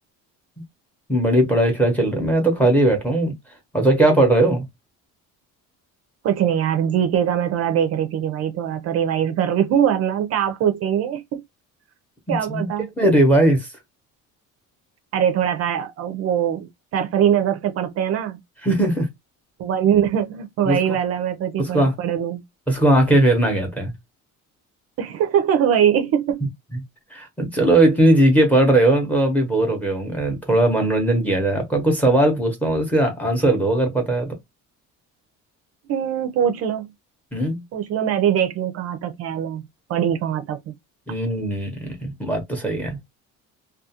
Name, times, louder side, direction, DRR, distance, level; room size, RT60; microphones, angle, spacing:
voice 1, 1.1-3.3 3.7-4.7 12.3-12.7 13.0-13.7 18.6-19.1 20.6-21.0 21.6-21.9 22.7-23.9 27.1-34.4 37.3-37.6 41.1-43.0, right 1 dB, 5° left, 0.7 m, -19 dB
voice 2, 6.2-11.4 12.3-12.9 15.1-18.4 19.6-22.4 25.0-26.4 35.9-36.9 37.7-39.6 39.9-40.7, right 9 dB, 50° right, 0.4 m, -22 dB
2.4 x 2.3 x 2.7 m
cardioid pair, 170°, 33 cm